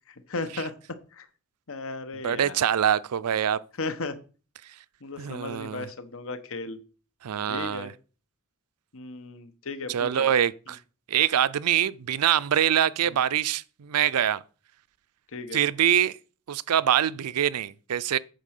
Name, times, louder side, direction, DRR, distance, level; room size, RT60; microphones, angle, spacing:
voice 1, 0.1-0.7 1.1-1.3 1.7-2.7 3.8-4.1 5.0-6.8 7.5-7.9 8.9-10.3 10.7-10.8 13.0-13.2 15.3-15.6, left 3 dB, 65° left, 1.2 m, -35 dB
voice 2, 2.2-3.6 5.2-5.9 7.2-7.9 9.9-10.8 11.1-14.4 15.5-16.2 16.5-18.2, right 10 dB, 85° right, 0.5 m, -24 dB
9.0 x 4.4 x 6.6 m
head